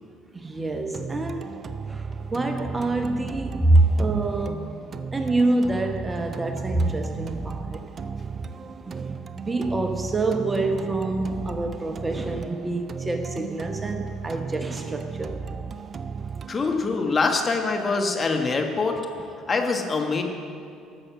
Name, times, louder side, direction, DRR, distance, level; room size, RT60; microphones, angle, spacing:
voice 1, 0.3-1.6 1.9-4.8 5.1-7.8 8.8-15.4, right 2 dB, 20° right, 1.0 m, -26 dB
sound 1, 0.9-18.9, right 5 dB, 40° right, 0.5 m, -35 dB
voice 2, 16.5-19.0 19.5-20.2, left 4 dB, 35° left, 1.5 m, -24 dB
11.5 x 6.5 x 7.2 m
hypercardioid pair, 65°, 0 cm